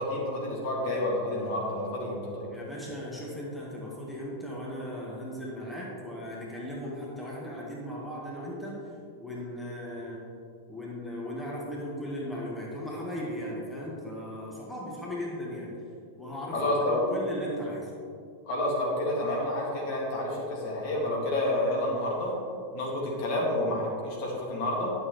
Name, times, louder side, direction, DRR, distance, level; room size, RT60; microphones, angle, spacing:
voice 1, 0.0-2.5 16.5-17.0 18.5-22.3 22.7-24.9, left 1 dB, 45° left, -3 dB, 2.0 m, -29 dB
voice 2, 2.5-8.8 9.2-10.2 10.7-15.7 16.2-17.9, equal, 5° left, -5 dB, 1.7 m, -37 dB
11.0 x 6.8 x 3.2 m, 2.5 s
figure-of-eight pair, 90°, 0 cm